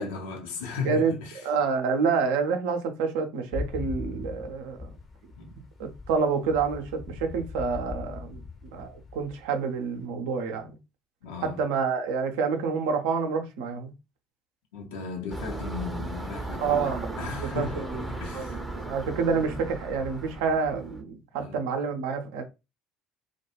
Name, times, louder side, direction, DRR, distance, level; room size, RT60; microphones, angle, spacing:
voice 1, 0.0-1.4 5.4-5.5 11.2-11.6 14.7-18.6 21.3-21.6, left 5 dB, 65° left, 0.7 m, -36 dB
voice 2, 0.9-1.2 1.4-4.9 5.8-8.4 8.7-10.8 11.4-13.9 16.6-18.1 18.3-22.4, right 5 dB, 60° right, 0.5 m, -28 dB
sound 1, 3.5-10.0, left 4 dB, 35° left, 0.7 m, -40 dB
sound 2, 15.3-21.0, right 2 dB, 5° right, 0.6 m, -36 dB
2.2 x 2.2 x 3.0 m
figure-of-eight pair, 60°, 0 cm